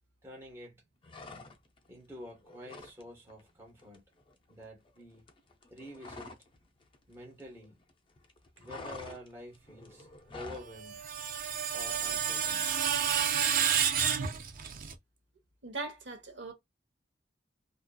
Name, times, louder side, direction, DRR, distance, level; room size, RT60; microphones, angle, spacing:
voice 1, 0.2-0.8 1.9-4.0 4.5-5.2 5.7-6.3 7.1-7.8 8.6-10.1 10.3-11.1 11.7-12.7, left 1 dB, 15° right, 0.7 m, -48 dB
sound 1, 1.0-1.9 2.2-3.0 3.3-3.5 3.8-6.6 6.8-7.9 8.2-10.7, left 3 dB, 30° left, 0.4 m, -48 dB
Screech, 10.6-14.9, right 8 dB, 50° right, 0.4 m, -30 dB
voice 2, 15.6-16.5, right 3 dB, 70° right, 0.9 m, -40 dB
2.5 x 2.3 x 2.2 m
head